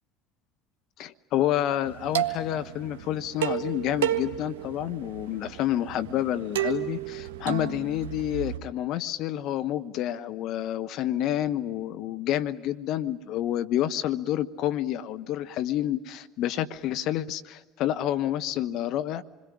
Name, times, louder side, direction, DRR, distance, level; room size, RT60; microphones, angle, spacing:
voice 1, 1.0-19.2, left 12 dB, 55° left, 12 dB, 1.0 m, -29 dB
sound 1, 1.9-8.6, right 12 dB, 75° right, 1.5 m, -32 dB
27.0 x 21.5 x 9.8 m, 1.2 s
hypercardioid pair, 70°, 0 cm